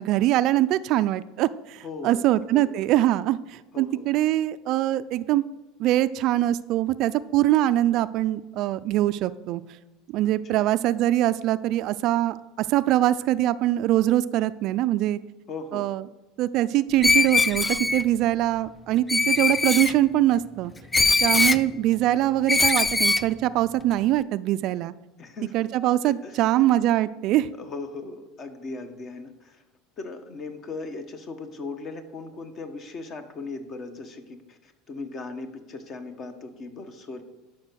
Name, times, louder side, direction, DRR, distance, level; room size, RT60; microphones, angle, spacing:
voice 1, 0.0-5.4 5.8-9.6 10.1-15.2 15.7-16.0 16.4-20.7 21.2-24.9 25.5-27.5, right 14 dB, 55° right, 14 dB, 0.4 m, -23 dB
voice 2, 1.8-2.3 2.5-2.8 3.7-4.0 10.2-10.6 15.5-15.9 21.4-21.6 25.2-25.5 26.0-26.5 27.6-29.6 30.0-37.2, left 3 dB, 35° left, 8 dB, 1.3 m, -38 dB
Screech, 17.0-18.0 19.1-19.9 20.9-21.6 22.5-23.3, left 3 dB, 15° left, 0.4 m, -21 dB
11.5 x 5.9 x 6.3 m, 1.1 s
supercardioid pair, 120°, 0 cm